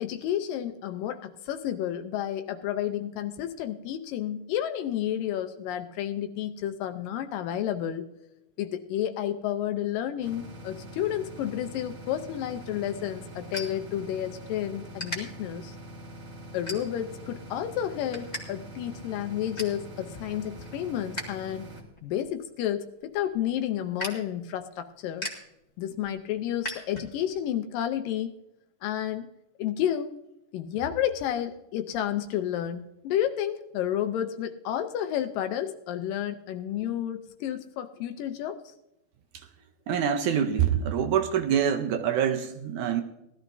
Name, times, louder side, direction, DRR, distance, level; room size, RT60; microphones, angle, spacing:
voice 1, 0.0-8.1 8.6-15.8 16.5-21.7 22.0-25.3 25.8-28.3 28.8-29.3 29.6-30.2 30.5-38.7, left 11 dB, 80° left, 8 dB, 2.2 m, -31 dB
sound 1, 10.2-21.8, right 1 dB, 45° right, 0.8 m, -44 dB
sound 2, 12.5-14.5 14.9-15.2 15.8-16.0 16.6-17.2 17.6-18.4 18.7-18.8 19.2-19.8 20.3-21.4 21.7-27.4, left 1 dB, 20° left, 1.0 m, -40 dB
voice 2, 39.9-43.0, right 8 dB, 75° right, 5 dB, 1.8 m, -25 dB
19.0 x 13.0 x 2.6 m, 0.89 s
omnidirectional pair, 4.3 m